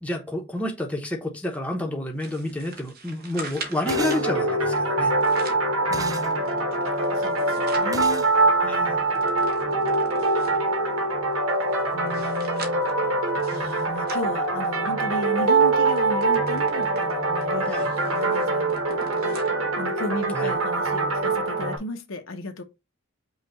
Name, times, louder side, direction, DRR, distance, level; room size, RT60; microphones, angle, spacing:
voice 1, 0.0-5.1 8.7-9.0 17.7-17.9 20.3-20.5, left 1 dB, 5° left, 0.9 m, -30 dB
sound 1, 2.2-4.3 5.0-5.7 6.2-7.9 8.4-8.5 8.7-10.7 11.3-15.1 15.5-15.6 16.0-19.6 20.0-20.1 20.9-21.0, right 3 dB, 50° right, 1.0 m, -42 dB
sound 2, 3.8-21.8, right 2 dB, 80° right, 1.2 m, -24 dB
sound 3, 3.9-4.3 5.9-6.3 7.9-8.3, right 4 dB, 15° right, 0.3 m, -34 dB
voice 2, 5.9-8.3 8.6-9.0 11.9-12.9 13.5-19.4 19.8-22.6, left 2 dB, 65° left, 0.8 m, -35 dB
5.5 x 2.3 x 4.1 m
head